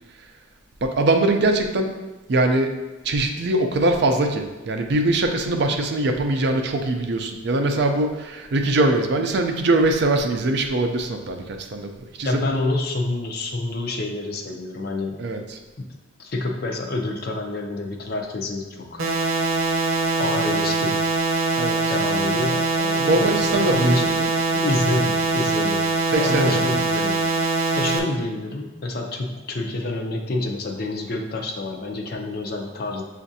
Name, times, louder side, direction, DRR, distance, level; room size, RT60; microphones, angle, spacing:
voice 1, 0.8-1.9 2.3-2.7 3.0-11.9 12.2-12.5 15.2-15.6 21.6-21.8 23.0-24.3 26.1-26.8, right 2 dB, 55° right, 5 dB, 0.4 m, -22 dB
voice 2, 12.2-15.2 16.2-19.0 20.2-21.0 21.9-24.1 24.5-25.8 26.1-27.2 27.8-33.0, left 2 dB, 50° left, 2 dB, 0.5 m, -27 dB
sound 1, 19.0-28.0, right 3 dB, 85° right, 0.7 m, -22 dB
7.0 x 2.5 x 2.7 m, 1.1 s
head